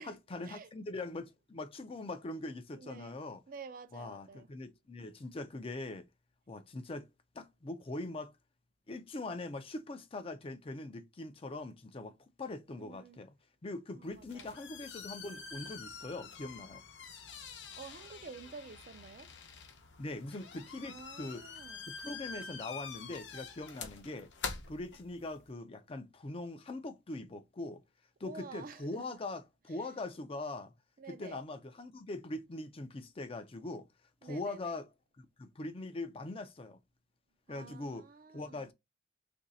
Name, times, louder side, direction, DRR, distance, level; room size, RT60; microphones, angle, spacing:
voice 1, 0.0-3.4 3.9-6.1 6.5-7.1 7.3-8.4 8.9-13.3 13.6-16.8 20.0-21.5 22.0-24.3 24.7-27.8 28.2-30.7 31.1-33.9 34.2-34.9 35.2-36.8 37.5-38.1 38.3-38.7, left 2 dB, 30° left, 0.5 m, -42 dB
voice 2, 2.7-3.2 3.5-4.5 12.7-13.2 13.9-14.6 17.8-19.3 20.8-21.9 28.2-29.2 29.7-29.9 31.0-31.4 34.2-34.8 37.5-38.7, right 5 dB, 50° right, 0.5 m, -50 dB
sound 1, 14.0-25.5, left 5 dB, 90° left, 0.7 m, -46 dB
3.2 x 2.6 x 3.9 m
head